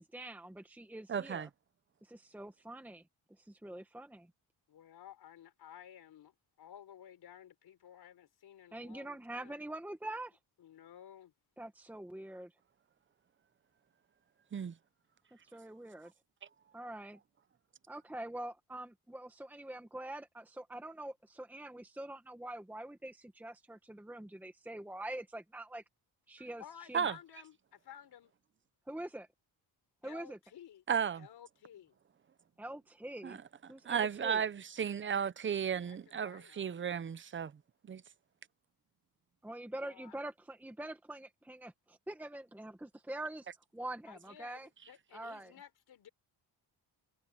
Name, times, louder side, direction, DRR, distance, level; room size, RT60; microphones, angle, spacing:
voice 1, 0.0-1.5 2.0-3.0 3.4-4.3 8.7-10.4 11.6-12.5 15.5-16.1 16.7-17.2 17.9-25.8 26.3-26.6 26.9-27.1 28.9-29.3 30.0-30.4 32.6-33.4 33.7-34.4 39.4-43.5 43.7-44.7 45.1-45.5, right 1 dB, 5° right, 1.2 m, -45 dB
voice 2, 1.1-1.5 14.5-14.7 26.9-27.2 30.9-31.3 33.2-33.4 33.8-37.5 37.9-38.0, right 7 dB, 30° right, 0.6 m, -34 dB
voice 3, 4.7-9.7 10.6-11.3 26.4-28.3 30.0-30.8 31.2-32.0 35.8-36.0 36.2-36.8 39.8-40.1 44.1-46.1, left 10 dB, 65° left, 4.3 m, -55 dB
wide cardioid pair, 170°, 41 cm